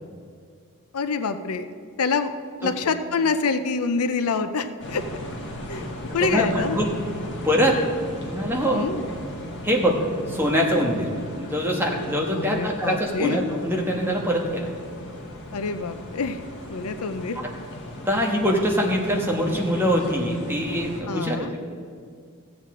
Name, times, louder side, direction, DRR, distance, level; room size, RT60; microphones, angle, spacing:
voice 1, 0.9-1.7 2.0-2.3 2.6-5.0 5.7-5.9 6.1-6.8 8.7-9.1 12.3-13.4 15.5-16.4 16.7-17.4 21.1-21.5, left 4 dB, 80° left, 10 dB, 0.6 m, -26 dB
sound 1, 4.8-21.0, left 1 dB, 55° left, 1.6 m, -37 dB
voice 2, 6.2-6.9 7.4-7.8 8.3-8.9 9.6-14.7 18.0-21.6, equal, 10° right, -1 dB, 1.3 m, -23 dB
15.0 x 8.1 x 3.7 m, 2.2 s
head